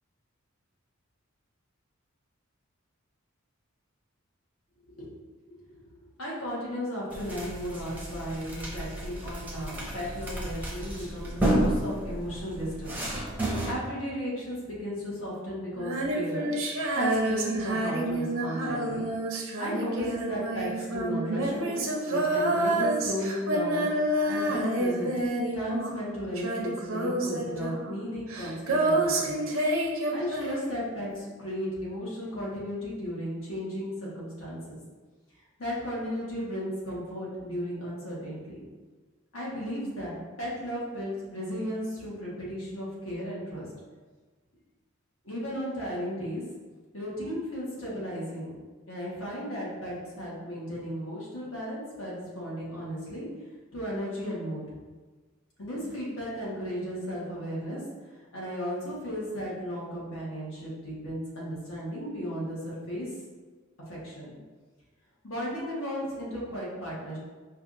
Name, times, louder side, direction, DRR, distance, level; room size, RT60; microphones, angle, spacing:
voice 1, 5.5-13.0 13.7-16.5 16.9-19.1 19.6-25.1 25.5-29.4 30.1-34.8 35.6-38.6 39.3-43.7 45.2-46.4 46.9-48.5 48.9-53.3 53.7-54.6 55.6-57.8 58.3-63.1 63.9-64.4 65.2-67.2, equal, 70° left, -6 dB, 1.3 m, -35 dB
sound 1, 7.1-13.7, right 1 dB, 10° right, 0.6 m, -31 dB
Female singing, 15.7-26.1 26.3-30.8, right 1 dB, 65° right, 0.6 m, -28 dB
4.7 x 2.4 x 2.5 m, 1.4 s
head